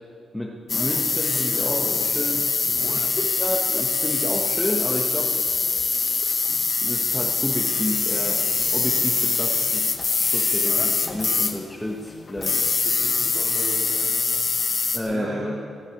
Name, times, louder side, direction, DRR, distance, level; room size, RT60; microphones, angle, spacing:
voice 1, 0.3-2.4 2.9-5.3 5.8-6.2 6.5-12.6 14.9-15.6, left 1 dB, 10° left, -2 dB, 1.3 m, -31 dB
sound 1, 0.7-11.6 12.3-15.0, left 4 dB, 40° left, 1.3 m, -23 dB
voice 2, 2.7-3.0 12.4-14.1 15.0-15.6, right 2 dB, 70° right, -4 dB, 2.3 m, -37 dB
17.5 x 10.0 x 7.1 m, 2.4 s
cardioid pair, 105°, 0 cm